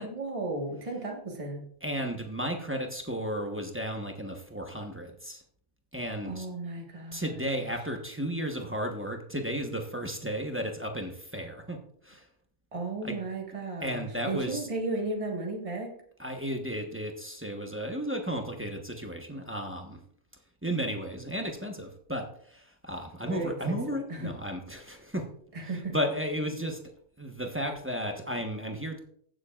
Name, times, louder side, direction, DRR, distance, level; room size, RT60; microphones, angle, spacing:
voice 1, 0.0-1.6 6.2-7.7 12.7-15.9 23.2-24.3 25.5-25.9, right 2 dB, 25° right, 0 dB, 1.5 m, -35 dB
voice 2, 1.8-5.4 5.9-6.5 7.1-11.8 12.0-12.3 13.0-13.2 13.8-14.7 16.2-20.0 20.6-25.2 25.9-26.8 27.2-29.0, equal, 10° right, 2 dB, 1.0 m, -34 dB
15.5 x 7.4 x 2.4 m, 0.63 s
omnidirectional pair, 1.4 m